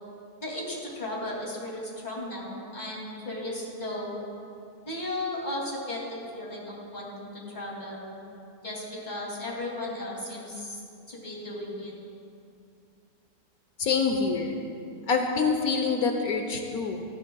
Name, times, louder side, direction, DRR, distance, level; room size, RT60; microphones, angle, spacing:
voice 1, 0.4-4.2 4.8-6.0 6.3-8.1 8.6-10.8 11.1-11.9, left 1 dB, 30° left, -4 dB, 2.8 m, -35 dB
voice 2, 13.8-14.6 15.1-17.0, left 5 dB, 70° left, 3 dB, 1.3 m, -26 dB
19.0 x 13.0 x 2.3 m, 2.5 s
omnidirectional pair, 1.7 m